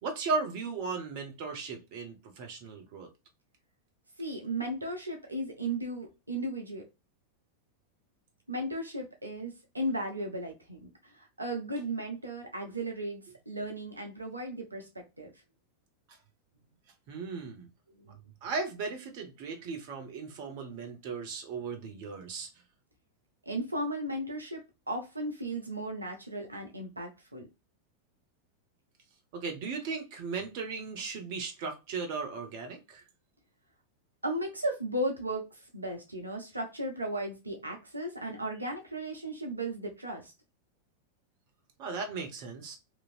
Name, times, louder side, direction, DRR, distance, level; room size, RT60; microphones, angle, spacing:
voice 1, 0.0-3.1 17.1-17.7 18.4-22.5 29.3-33.0 41.8-42.8, right 4 dB, 45° right, 0.8 m, -36 dB
voice 2, 4.2-6.8 8.5-10.9 11.1-15.3 18.0-18.1 23.5-27.4 34.2-40.3, right 1 dB, 80° right, 0.7 m, -35 dB
2.9 x 2.6 x 2.4 m
figure-of-eight pair, 90°, 0 cm